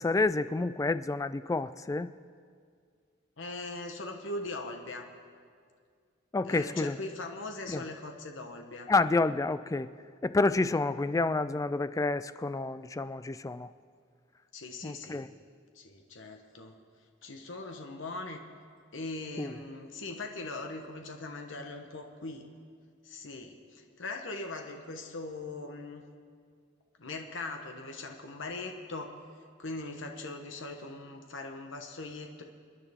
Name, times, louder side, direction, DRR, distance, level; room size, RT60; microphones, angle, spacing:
voice 1, 0.0-2.1 6.3-7.0 7.7-7.8 8.9-9.9 10.2-13.7 14.8-15.3 19.4-19.6, left 3 dB, 15° left, 14 dB, 0.3 m, -29 dB
voice 2, 3.4-5.1 6.4-8.9 14.5-15.3 15.7-16.7 17.2-18.4 18.9-22.5 23.0-26.0 27.0-29.2 29.6-32.4, left 2 dB, 75° left, 3 dB, 1.1 m, -40 dB
29.5 x 10.0 x 3.6 m, 2.1 s
head